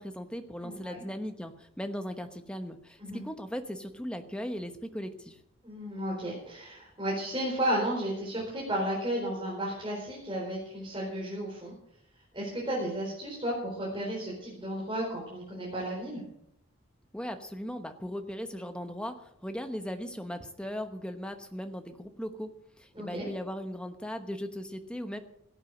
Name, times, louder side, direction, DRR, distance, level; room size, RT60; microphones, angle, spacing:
voice 1, 0.0-5.4 17.1-22.5 22.8-25.2, equal, 5° left, 6 dB, 1.0 m, -38 dB
voice 2, 0.6-1.0 3.0-3.2 5.6-11.7 12.3-16.2 22.9-23.2, right 1 dB, 20° right, -5 dB, 4.4 m, -33 dB
17.0 x 9.0 x 6.4 m, 0.74 s
head